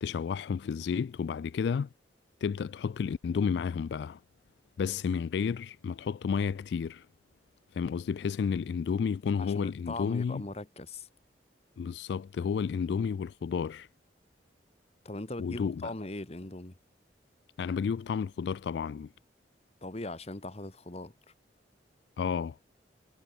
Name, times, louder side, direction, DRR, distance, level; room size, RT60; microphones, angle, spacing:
voice 1, 0.0-1.9 2.4-4.2 4.8-7.1 7.7-10.4 11.8-13.9 15.4-15.9 17.6-19.1 22.2-22.6, left 6 dB, 65° left, 0.3 m, -31 dB
voice 2, 9.4-11.1 15.0-16.8 19.8-21.1, left 2 dB, 35° left, 1.4 m, -39 dB
head